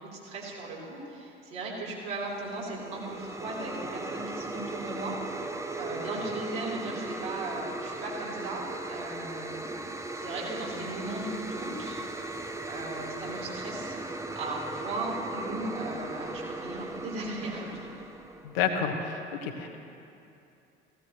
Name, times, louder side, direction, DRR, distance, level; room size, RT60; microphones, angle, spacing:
voice 1, 0.2-5.3 5.8-9.6 10.1-12.0 12.6-14.0 14.3-17.9, right 2 dB, 60° right, -5 dB, 3.8 m, -37 dB
sound 1, 2.1-18.6, right 2 dB, 10° right, 0.8 m, -38 dB
voice 2, 18.5-19.8, left 6 dB, 65° left, 3 dB, 1.3 m, -29 dB
16.5 x 16.0 x 3.1 m, 2.7 s
figure-of-eight pair, 60°, 31 cm